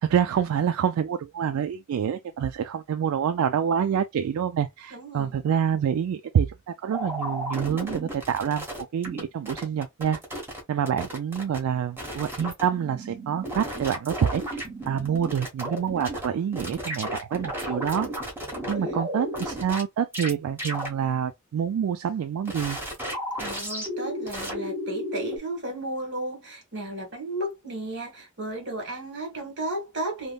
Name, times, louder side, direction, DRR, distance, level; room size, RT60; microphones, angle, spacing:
voice 1, 0.0-8.7 8.9-10.2 10.7-18.1 18.7-22.8, right 8 dB, 80° right, 0.3 m, -27 dB
voice 2, 4.9-5.4 18.6-19.0 23.4-30.3, right 1 dB, 55° right, 1.7 m, -34 dB
sound 1, 6.9-9.2 9.5-10.6 10.9-11.6 12.0-16.3 16.5-19.8 20.1-20.3 20.6-20.9 22.4-25.4, equal, 10° right, 1.1 m, -33 dB
3.4 x 2.1 x 2.2 m
head